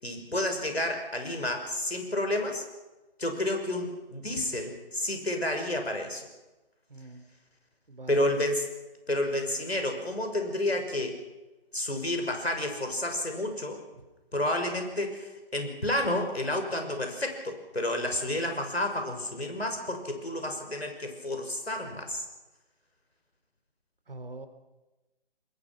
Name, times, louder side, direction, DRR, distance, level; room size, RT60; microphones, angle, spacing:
voice 1, 0.0-2.6 3.2-6.2 8.1-8.7 9.1-11.1 11.7-13.8 14.3-22.2, left 1 dB, 85° left, 4 dB, 6.2 m, -30 dB
voice 2, 6.9-7.3 7.9-8.4 13.9-14.1 24.1-24.5, right 2 dB, 60° right, 9 dB, 3.5 m, -44 dB
25.0 x 21.5 x 6.1 m, 1.1 s
figure-of-eight pair, 145°, 31 cm